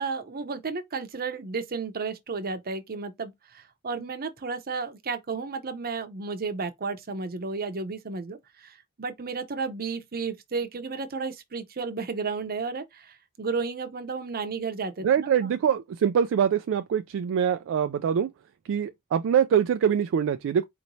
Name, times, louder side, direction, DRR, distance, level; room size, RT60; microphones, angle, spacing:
voice 1, 0.0-15.5, right 4 dB, 45° right, 0.7 m, -33 dB
voice 2, 15.0-18.3 18.6-20.6, right 8 dB, 60° right, 0.3 m, -24 dB
4.3 x 2.9 x 2.7 m
head